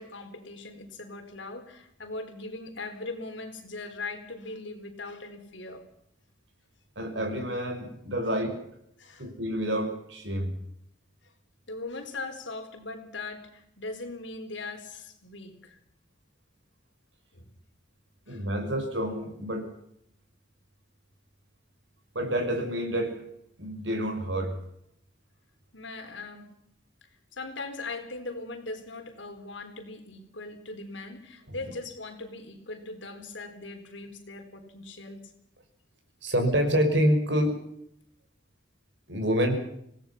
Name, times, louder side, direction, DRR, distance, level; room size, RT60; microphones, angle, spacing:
voice 1, 0.0-5.8 9.0-9.2 11.2-11.3 11.7-15.8 17.3-17.4 18.3-18.5 25.7-26.5 27.3-35.3, left 3 dB, 75° left, 5 dB, 4.2 m, -40 dB
voice 2, 7.0-8.6 9.2-10.6 18.3-19.7 22.1-23.2 23.6-24.6 36.2-37.6 39.1-39.6, equal, 70° right, 5 dB, 5.9 m, -27 dB
26.5 x 18.0 x 5.9 m, 0.75 s
head